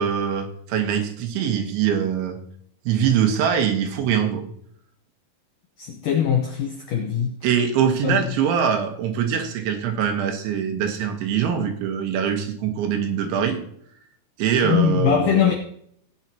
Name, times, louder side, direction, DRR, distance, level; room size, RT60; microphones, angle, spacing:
voice 1, 0.0-2.4 2.9-4.5 7.4-13.6 14.4-15.5, right 8 dB, 85° right, 4 dB, 3.7 m, -23 dB
voice 2, 5.8-7.4 8.0-8.3 14.6-15.5, left 9 dB, 85° left, 3 dB, 1.8 m, -22 dB
17.0 x 9.6 x 2.9 m, 0.68 s
omnidirectional pair, 5.2 m